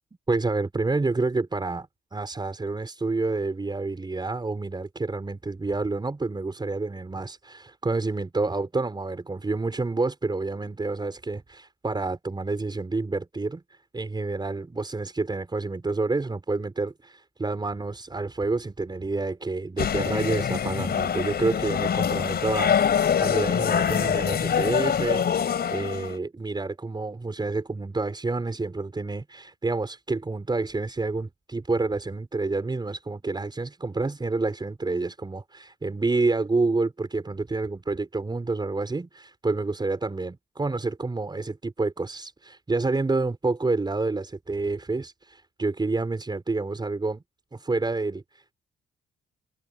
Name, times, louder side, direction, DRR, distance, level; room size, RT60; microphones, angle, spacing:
voice 1, 0.3-22.7 23.2-47.2 47.5-48.5, right 3 dB, 20° right, 4.8 m, -28 dB
sound 1, 19.8-26.2, left 8 dB, 55° left, 4.1 m, -24 dB
cardioid pair, 90°, 20 cm